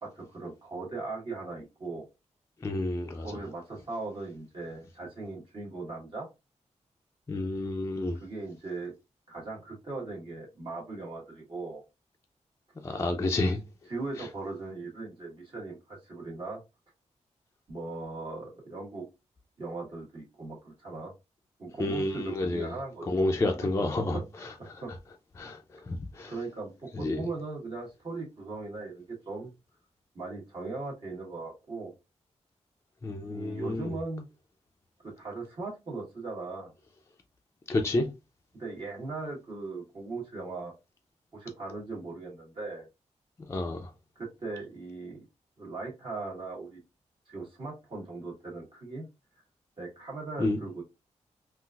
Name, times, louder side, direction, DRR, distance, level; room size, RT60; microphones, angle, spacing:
voice 1, 0.0-2.0 3.2-6.3 7.9-8.9 9.3-11.8 13.9-16.6 17.7-19.0 19.6-21.1 21.6-23.3 23.6-23.7 24.1-24.9 26.3-29.5 30.1-31.9 33.3-34.3 35.0-36.7 38.5-40.7 41.3-42.9 44.1-45.2 45.6-46.8 47.3-49.1 49.8-50.8, right 3 dB, 45° right, 1.3 m, -39 dB
voice 2, 2.6-3.3 7.3-8.2 12.8-13.6 21.8-22.7 23.1-24.5 25.4-25.6 25.9-26.3 26.9-27.2 33.0-33.9 37.7-38.1 43.5-43.9 50.4-50.6, left 2 dB, 25° left, 0.4 m, -29 dB
3.8 x 2.4 x 2.3 m
wide cardioid pair, 150°, 12 cm